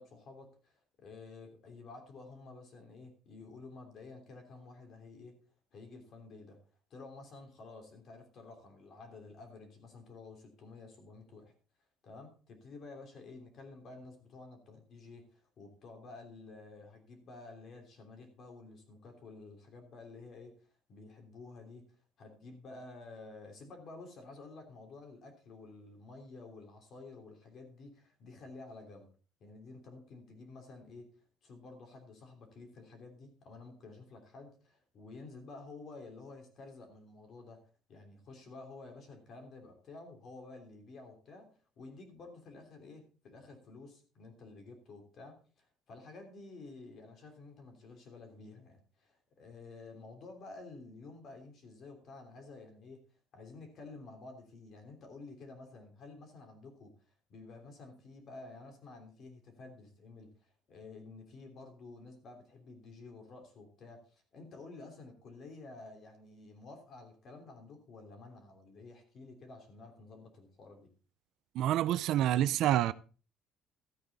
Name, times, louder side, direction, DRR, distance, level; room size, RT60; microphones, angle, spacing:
voice 1, 0.0-5.3 5.7-6.6 6.9-11.5 12.0-21.9 22.2-29.1 29.4-31.1 31.4-37.6 37.9-41.5 41.8-53.0 53.3-70.9, left 3 dB, 40° left, 3.1 m, -51 dB
voice 2, 71.5-72.9, right 12 dB, 55° right, 0.5 m, -27 dB
13.5 x 8.8 x 4.0 m
cardioid pair, 165°, 0 cm